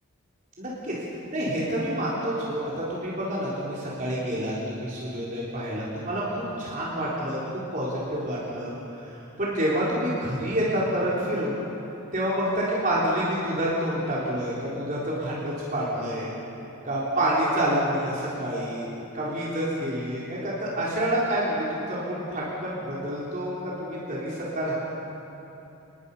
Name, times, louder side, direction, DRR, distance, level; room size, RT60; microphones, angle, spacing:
voice 1, 0.6-1.0 1.3-11.6 12.1-16.3 16.8-18.9 19.1-24.7, right 1 dB, 40° right, -7 dB, 3.9 m, -28 dB
26.5 x 20.5 x 5.6 m, 3.0 s
head